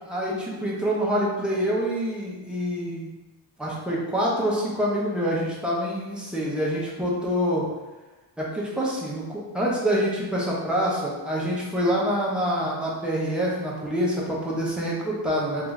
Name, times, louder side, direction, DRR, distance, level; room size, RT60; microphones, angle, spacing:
voice 1, 0.0-3.1 3.6-7.7 8.4-15.7, equal, ahead, -5 dB, 0.6 m, -26 dB
3.6 x 2.5 x 3.1 m, 1.1 s
wide cardioid pair, 175°, 43 cm